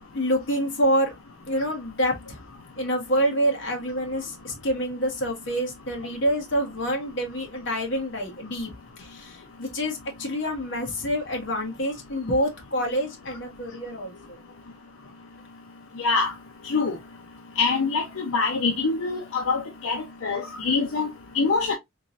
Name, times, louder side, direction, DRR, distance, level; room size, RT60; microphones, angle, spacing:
voice 1, 0.1-1.1 1.5-2.4 2.8-8.7 9.0-14.4, equal, 60° left, 1.4 m, -27 dB
voice 2, 16.0-16.3 16.6-17.0 17.6-21.1 21.3-21.7, left 4 dB, 80° left, 0.6 m, -24 dB
3.7 x 3.0 x 2.6 m
head